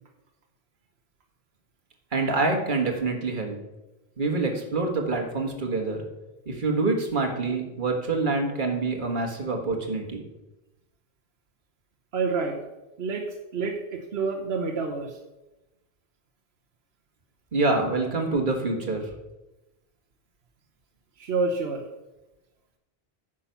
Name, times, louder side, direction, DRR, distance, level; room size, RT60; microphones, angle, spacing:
voice 1, 2.1-3.6 4.2-6.1 6.5-10.3 17.5-19.1, right 3 dB, 55° right, 2 dB, 1.8 m, -26 dB
voice 2, 12.1-12.6 13.0-13.3 13.5-15.2 21.2-21.8, right 4 dB, 85° right, 2 dB, 1.2 m, -28 dB
9.9 x 6.4 x 5.7 m, 1.0 s
omnidirectional pair, 1.0 m